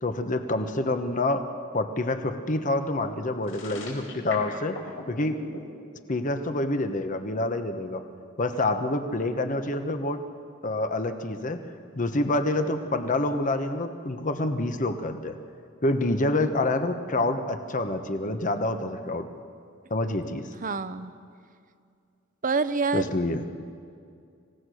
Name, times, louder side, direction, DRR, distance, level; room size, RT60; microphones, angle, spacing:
voice 1, 0.0-1.4 1.7-4.8 5.1-5.4 6.1-8.0 8.4-10.2 10.6-11.6 12.0-15.4 15.8-19.3 19.9-20.5 22.9-23.4, left 2 dB, 40° left, 8 dB, 1.1 m, -27 dB
sound 1, 3.4-5.6, left 2 dB, 85° left, 4.5 m, -39 dB
voice 2, 20.6-21.1 22.4-23.1, right 4 dB, 45° right, 12 dB, 0.8 m, -26 dB
26.0 x 17.0 x 6.4 m, 2.3 s
head